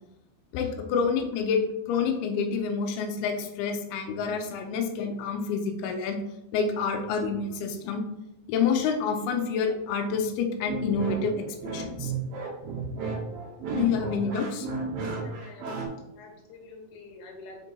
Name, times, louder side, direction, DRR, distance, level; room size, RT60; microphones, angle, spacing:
voice 1, 0.5-1.6 1.9-6.2 6.5-8.0 8.5-12.1 13.7-14.7, left 5 dB, 90° left, 4 dB, 2.7 m, -28 dB
sound 1, 10.7-15.9, right 4 dB, 80° right, 2.9 m, -33 dB
voice 2, 15.0-15.8 16.2-17.7, left 2 dB, 65° left, 0 dB, 2.3 m, -47 dB
5.7 x 4.5 x 4.0 m, 0.90 s
omnidirectional pair, 4.4 m